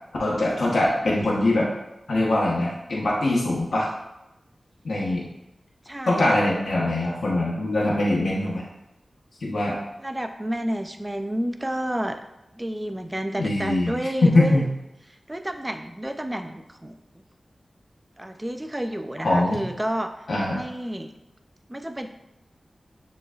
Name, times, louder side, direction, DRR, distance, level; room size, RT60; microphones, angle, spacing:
voice 1, 0.2-1.7 2.1-3.9 4.8-5.3 6.1-8.6 9.4-9.8 13.4-14.7 19.2-19.7 20.3-20.6, left 1 dB, 75° left, -5 dB, 1.1 m, -22 dB
voice 2, 5.9-6.5 10.0-12.2 12.5-14.6 15.3-17.0 18.2-20.1 20.5-21.1 21.7-22.1, equal, 15° right, 7 dB, 0.4 m, -30 dB
6.8 x 3.1 x 2.4 m, 0.92 s
wide cardioid pair, 65°, 0 cm